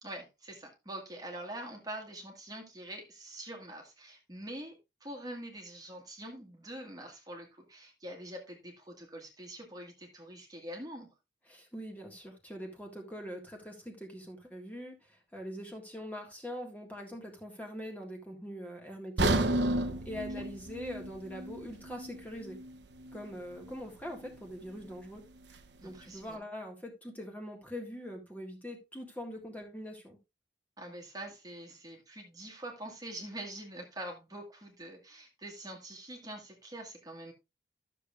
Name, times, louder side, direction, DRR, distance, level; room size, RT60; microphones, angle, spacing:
voice 1, 0.0-11.1 25.8-26.4 30.8-37.3, right 1 dB, 20° right, 1.7 m, -45 dB
voice 2, 11.5-19.5 20.1-22.6 23.1-25.2 25.5-30.2, equal, 10° left, 1.8 m, -43 dB
sound 1, 19.2-23.2 23.6-23.8 24.3-24.4, right 2 dB, 70° right, 0.9 m, -32 dB
12.5 x 6.9 x 2.4 m
head